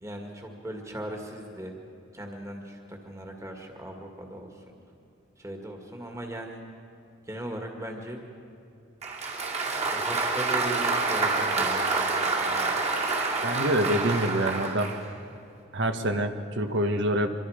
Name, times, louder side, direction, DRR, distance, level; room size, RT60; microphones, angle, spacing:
voice 1, 0.0-1.8 2.1-4.5 5.4-6.6 7.3-8.2 9.9-12.8, right 1 dB, 15° right, 2 dB, 2.0 m, -38 dB
Applause, 9.0-15.0, right 3 dB, 35° right, 2.5 m, -27 dB
voice 2, 13.4-14.9 15.7-17.3, right 1 dB, 60° right, 7 dB, 1.3 m, -26 dB
25.5 x 23.5 x 5.0 m, 2.6 s
head